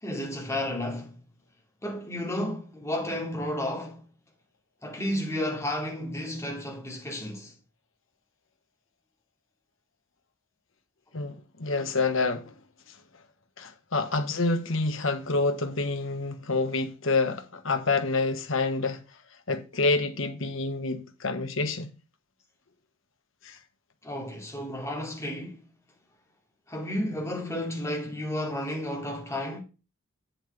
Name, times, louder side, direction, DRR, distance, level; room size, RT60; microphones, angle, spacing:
voice 1, 0.0-1.2 1.8-4.1 4.8-7.5 24.0-25.7 26.7-29.6, left 1 dB, 15° left, 2.6 m, -32 dB
voice 2, 11.1-12.5 13.6-19.0 19.5-21.9 23.4-23.6, left 3 dB, 65° left, 1.3 m, -27 dB
8.6 x 7.6 x 3.4 m
head